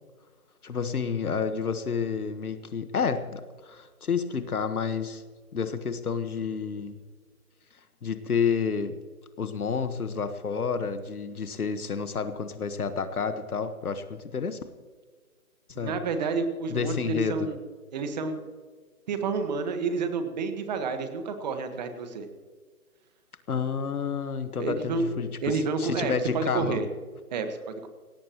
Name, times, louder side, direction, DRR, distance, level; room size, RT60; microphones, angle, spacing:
voice 1, 0.6-5.2 5.5-7.0 8.0-9.0 9.4-14.6 15.8-16.0 16.7-17.5 23.5-26.8, left 6 dB, 80° left, 9 dB, 1.5 m, -30 dB
voice 2, 15.7-17.6 17.9-18.4 19.1-22.3 24.6-26.9 27.3-27.9, right 4 dB, 30° right, 8 dB, 1.5 m, -30 dB
19.5 x 17.5 x 3.0 m, 1.5 s
hypercardioid pair, 155°, 44 cm